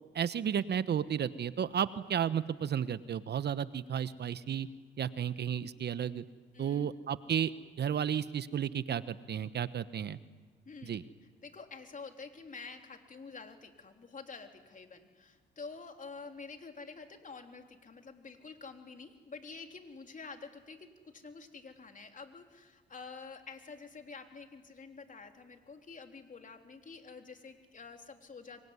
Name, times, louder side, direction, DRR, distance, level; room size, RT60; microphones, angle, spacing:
voice 1, 0.0-4.7 5.0-6.2 6.6-7.5 7.8-10.2 10.8-11.0, right 8 dB, 55° right, 15 dB, 1.1 m, -33 dB
voice 2, 6.5-6.9 10.7-11.1 11.4-28.6, left 4 dB, 40° left, 5 dB, 3.6 m, -48 dB
25.0 x 23.5 x 9.8 m, 1.4 s
supercardioid pair, 65°, 20 cm